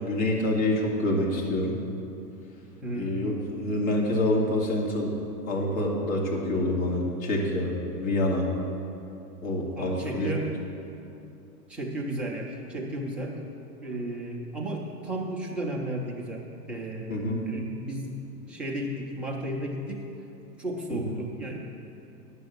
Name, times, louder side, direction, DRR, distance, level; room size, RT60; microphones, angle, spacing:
voice 1, 0.0-1.8 2.9-5.2 5.5-8.5 9.4-10.4 17.1-17.5 20.9-21.1, left 1 dB, 55° left, -1 dB, 2.6 m, -27 dB
voice 2, 2.8-3.2 9.8-10.5 11.7-13.4 13.8-16.4 16.7-17.2 17.5-18.2 18.5-20.0 20.6-21.6, right 1 dB, 5° right, -4 dB, 0.3 m, -33 dB
9.5 x 6.8 x 7.8 m, 2.7 s
hypercardioid pair, 115°, 48 cm